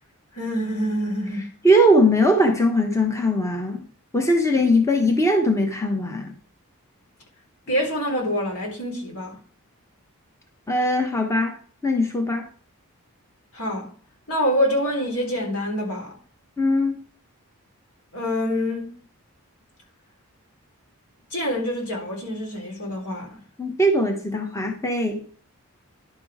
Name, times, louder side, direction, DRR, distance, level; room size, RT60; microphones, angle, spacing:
voice 1, 0.4-1.5 7.7-9.4 13.5-13.9 14.3-16.2 18.1-19.0 21.3-23.4, equal, 80° left, 3.7 m, -26 dB
voice 2, 1.6-3.8 4.1-6.3 10.7-11.6 11.8-12.5 16.6-17.0 23.6-25.2, equal, 15° left, 1.0 m, -20 dB
11.0 x 6.0 x 4.9 m
head